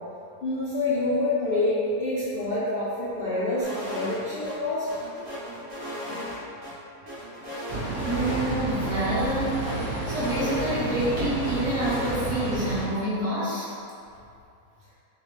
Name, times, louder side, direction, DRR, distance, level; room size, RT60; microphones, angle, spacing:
voice 1, 0.4-4.9, left 2 dB, 55° left, -9 dB, 0.7 m, -27 dB
sound 1, 3.6-4.2 4.4-4.5 4.9-6.7 7.1-8.5 8.8-8.9 9.2-11.1 11.4-12.2, equal, 80° right, 1.7 m, -36 dB
sound 2, 7.7-12.9, right 2 dB, 30° right, 0.8 m, -30 dB
voice 2, 8.0-13.7, right 1 dB, 60° right, -12 dB, 1.9 m, -28 dB
5.6 x 2.2 x 3.3 m, 2.6 s
omnidirectional pair, 1.6 m